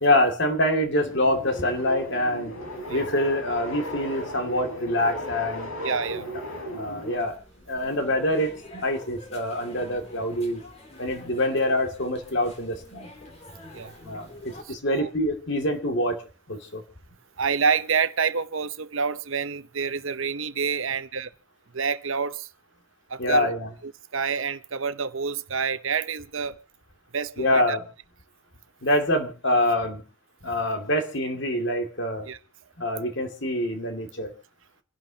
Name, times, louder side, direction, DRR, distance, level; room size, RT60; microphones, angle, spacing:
voice 1, 0.0-2.5 2.9-5.7 6.7-7.4 7.7-10.6 11.0-13.1 14.0-14.3 14.7-16.8 23.2-23.7 27.4-27.8 28.8-30.0 30.4-32.3 32.8-34.3, left 1 dB, 55° left, 2.4 m, -25 dB
sound 1, 1.0-7.2, equal, 75° left, 5.6 m, -35 dB
voice 2, 5.8-6.3 11.5-11.6 13.7-13.9 14.6-15.1 17.4-21.3 21.7-22.5 23.1-23.5 23.8-26.6 27.1-27.8 32.2-32.4, right 6 dB, 65° right, 0.9 m, -28 dB
sound 2, 7.1-14.6, left 1 dB, 30° left, 2.9 m, -46 dB
28.5 x 11.5 x 2.9 m
head